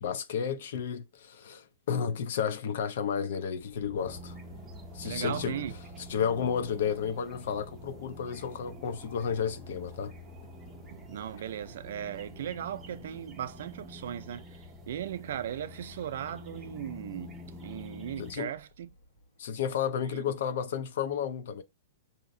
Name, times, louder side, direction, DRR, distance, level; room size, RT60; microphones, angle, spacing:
voice 1, 0.0-4.4 4.9-5.6 6.1-10.1 18.2-18.5 19.4-21.6, left 7 dB, 55° left, 0.6 m, -32 dB
Aircraft, 3.5-19.7, equal, 80° left, 1.2 m, -54 dB
sound 1, 4.0-18.4, equal, 10° right, 0.5 m, -48 dB
voice 2, 4.9-5.7 10.9-18.9 20.0-20.3, right 10 dB, 60° right, 0.4 m, -38 dB
5.0 x 2.8 x 2.6 m
hypercardioid pair, 170°, 0 cm